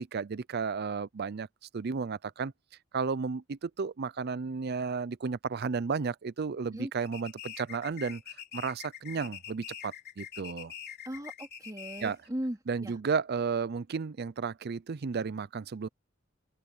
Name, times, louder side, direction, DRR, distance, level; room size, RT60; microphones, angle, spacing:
voice 1, 0.0-1.5 1.7-2.5 2.9-8.2 8.5-10.7 12.0-12.2 12.7-15.9, right 5 dB, 50° right, 0.5 m, -33 dB
sound 1, 7.0-12.3, left 9 dB, 55° left, 4.2 m, -45 dB
voice 2, 11.0-12.9, equal, 20° right, 2.7 m, -38 dB
open air
head